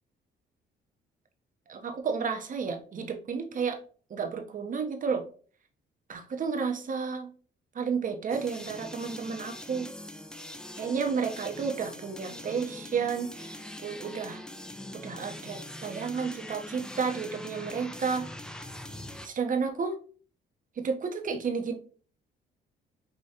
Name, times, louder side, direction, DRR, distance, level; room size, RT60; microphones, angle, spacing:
voice 1, 1.7-3.8 4.1-5.2 6.1-7.3 7.7-9.9 10.8-14.4 14.9-18.3 19.2-20.0 20.8-21.7, right 5 dB, 40° right, 5 dB, 0.8 m, -31 dB
sound 1, 8.3-19.3, left 1 dB, 5° left, 0.4 m, -43 dB
5.0 x 3.0 x 2.7 m, 0.42 s
cardioid pair, 90°, 20 cm